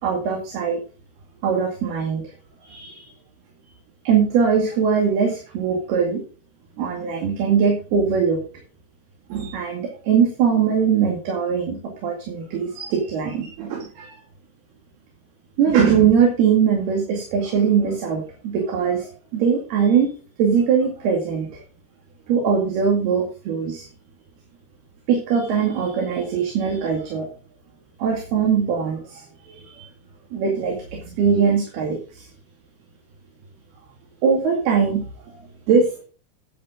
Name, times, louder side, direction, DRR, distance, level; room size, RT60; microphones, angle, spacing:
voice 1, 0.0-0.8 1.4-2.2 2.6-3.1 4.1-6.2 6.8-8.4 9.3-11.8 12.0-14.1 15.6-20.1 20.4-21.6 22.3-23.9 25.1-27.3 28.0-29.8 30.3-32.3 34.2-35.4 35.7-36.0, right 6 dB, 75° right, 1 dB, 4.3 m, -21 dB
10.5 x 8.9 x 3.8 m, 0.37 s
omnidirectional pair, 4.6 m